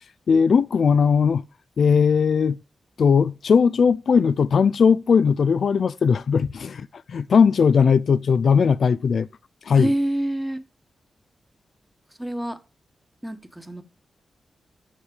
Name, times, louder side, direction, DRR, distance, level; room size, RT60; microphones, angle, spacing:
voice 1, 0.3-1.4 1.8-2.6 3.0-9.3 9.7-9.9, left 6 dB, 70° left, 0.4 m, -18 dB
voice 2, 9.7-10.6 12.2-12.6 13.2-13.8, right 1 dB, 10° right, 1.3 m, -26 dB
7.4 x 6.4 x 5.1 m
cardioid pair, 60°, 0 cm